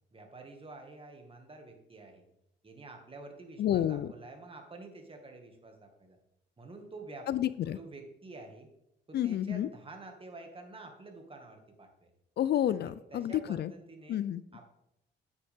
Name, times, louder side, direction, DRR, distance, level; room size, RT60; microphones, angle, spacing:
voice 1, 0.1-2.3 2.6-6.2 6.6-7.3 7.7-8.7 9.1-12.1 13.1-14.2 14.5-14.7, right 3 dB, 25° right, 3 dB, 2.1 m, -49 dB
voice 2, 3.6-4.1 7.3-7.8 9.1-9.7 12.4-13.7 14.1-14.4, left 11 dB, 55° left, 16 dB, 0.4 m, -30 dB
9.3 x 8.4 x 3.6 m, 0.80 s
cardioid pair, 90°, 20 cm